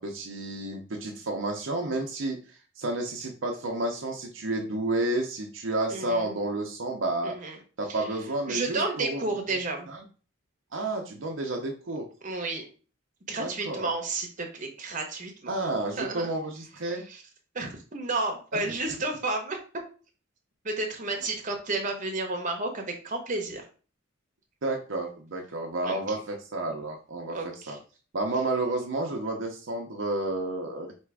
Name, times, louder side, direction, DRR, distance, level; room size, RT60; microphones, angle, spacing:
voice 1, 0.0-7.3 7.8-9.2 9.9-10.0 10.7-12.1 13.4-13.9 15.5-17.0 18.5-18.6 24.6-27.4 27.7-27.8 28.1-30.9, right 2 dB, 65° right, 1 dB, 0.7 m, -31 dB
voice 2, 5.9-6.3 7.2-7.6 7.9-8.1 8.5-9.9 12.2-12.7 13.3-15.6 16.0-16.3 17.1-17.2 17.5-19.6 20.6-23.6 25.8-26.2 27.3-27.8, right 3 dB, 40° right, 2 dB, 0.9 m, -32 dB
3.3 x 3.0 x 4.7 m, 0.38 s
head